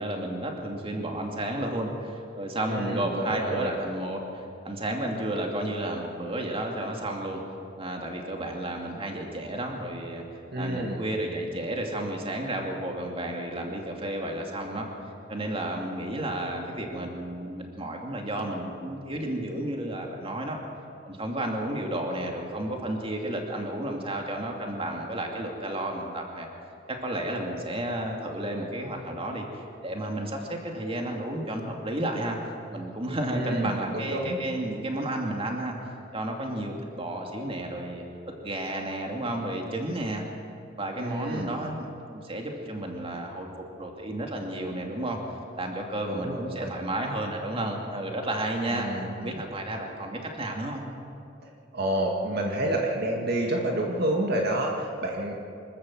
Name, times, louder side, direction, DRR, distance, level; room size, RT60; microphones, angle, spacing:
voice 1, 0.0-7.4 7.8-10.2 10.6-14.9 15.3-20.6 21.0-26.5 26.9-29.5 29.8-32.4 32.7-35.7 36.1-38.0 38.4-40.2 40.8-43.5 43.8-45.2 45.6-50.8, right 1 dB, 30° right, 1 dB, 2.5 m, -32 dB
voice 2, 2.6-3.7 10.5-11.0 33.3-33.8 34.0-34.4 41.0-41.5 46.1-46.8 48.7-49.4 51.4-55.3, right 1 dB, 55° right, 0 dB, 2.0 m, -29 dB
25.0 x 13.5 x 7.7 m, 2.6 s
head